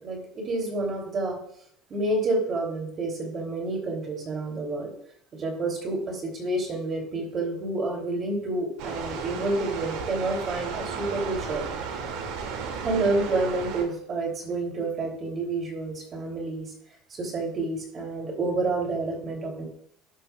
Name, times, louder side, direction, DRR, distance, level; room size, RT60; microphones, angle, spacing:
voice 1, 0.0-1.4 1.9-4.9 5.4-11.6 12.8-16.7 17.1-19.6, right 2 dB, 35° right, 1 dB, 3.2 m, -29 dB
sound 1, 8.8-13.8, right 5 dB, 75° right, 2.5 m, -34 dB
12.5 x 11.0 x 2.4 m, 0.70 s
cardioid pair, 130°, 0 cm